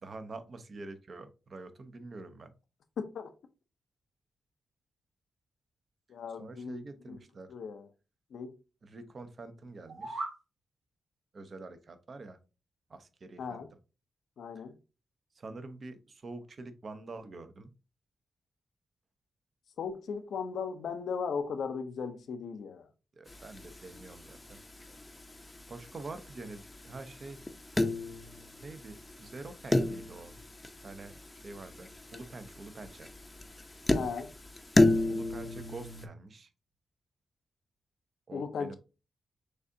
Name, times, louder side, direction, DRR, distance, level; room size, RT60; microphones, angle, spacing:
voice 1, 0.0-2.5 6.4-7.5 8.8-10.3 11.3-12.4 12.9-13.6 14.5-14.6 15.3-17.7 23.1-24.6 25.7-27.4 28.6-30.4 30.8-31.1 31.4-33.1 35.1-36.5 38.3-38.8, right 3 dB, 50° right, 0.8 m, -46 dB
voice 2, 3.0-3.3 6.1-6.8 7.1-7.2 7.5-7.8 8.3-8.5 13.4-13.7 14.4-14.7 19.8-22.9 33.9-34.3 38.3-38.8, left 6 dB, 75° left, 0.6 m, -37 dB
sound 1, 9.7-10.4, right 2 dB, 70° right, 1.8 m, -38 dB
sound 2, 23.3-36.1, left 2 dB, 20° left, 0.6 m, -33 dB
6.4 x 2.5 x 2.7 m
cardioid pair, 60°, 0 cm